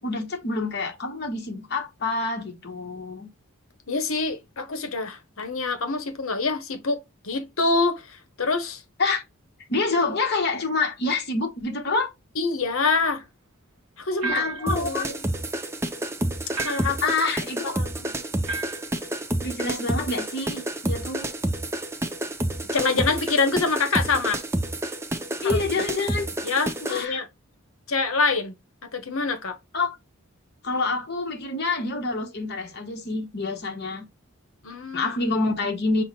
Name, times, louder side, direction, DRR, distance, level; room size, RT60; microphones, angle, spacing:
voice 1, 0.0-3.3 9.0-9.2 9.7-12.1 14.2-15.0 17.0-17.8 19.4-21.3 25.4-26.3 26.8-27.2 29.7-30.0 30.6-34.1 34.9-36.0, left 3 dB, 50° left, 1.0 m, -27 dB
voice 2, 3.9-7.0 7.2-8.8 12.4-13.2 14.0-15.2 16.6-17.1 17.7-18.1 22.7-24.4 25.4-25.8 26.4-27.3 27.9-28.5 28.8-29.6 34.6-35.1, left 4 dB, 70° left, 0.9 m, -26 dB
sound 1, 14.2-14.8 16.5-17.1 18.5-18.9, right 3 dB, 85° right, 0.7 m, -31 dB
sound 2, 14.7-27.1, right 1 dB, 10° right, 0.4 m, -29 dB
5.6 x 2.1 x 4.2 m
head